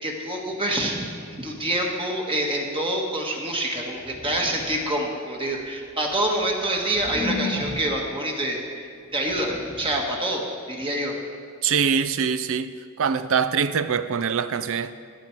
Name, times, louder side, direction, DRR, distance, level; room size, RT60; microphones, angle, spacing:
voice 1, 0.0-11.2, right 1 dB, 25° right, 1.3 m, -27 dB
sound 1, 4.0-5.0 5.7-8.1 9.0-10.1, left 2 dB, 15° left, 1.0 m, -34 dB
voice 2, 11.6-12.7 13.0-14.9, right 6 dB, 65° right, 0.5 m, -23 dB
14.0 x 8.7 x 4.6 m
head